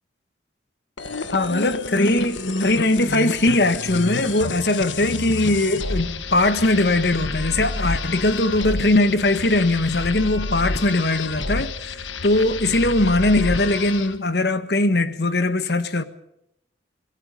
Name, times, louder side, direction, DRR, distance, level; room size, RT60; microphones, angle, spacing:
sound 1, 1.0-14.2, left 3 dB, 85° left, 1.4 m, -29 dB
voice 1, 1.3-16.0, left 2 dB, 60° left, 1.5 m, -20 dB
26.0 x 20.5 x 5.3 m
head